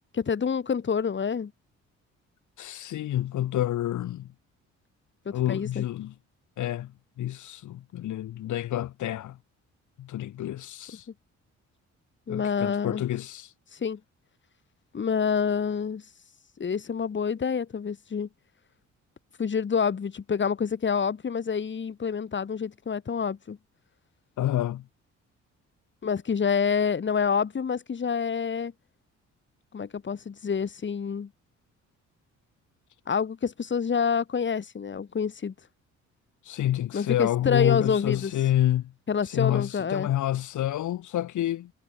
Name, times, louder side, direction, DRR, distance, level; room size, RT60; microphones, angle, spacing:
voice 1, 0.1-1.5 5.3-5.8 12.3-13.0 13.7-14.0 14.9-16.0 16.6-18.3 19.4-23.6 26.0-28.7 29.7-31.3 33.1-35.5 36.9-38.3 39.1-40.1, left 6 dB, 40° left, 2.8 m, -27 dB
voice 2, 2.6-4.3 5.3-6.1 6.6-6.9 7.2-9.4 10.0-11.1 12.3-13.5 24.4-24.8 36.4-38.9 39.2-41.7, left 13 dB, 75° left, 2.7 m, -28 dB
cardioid pair, 90°, 30 cm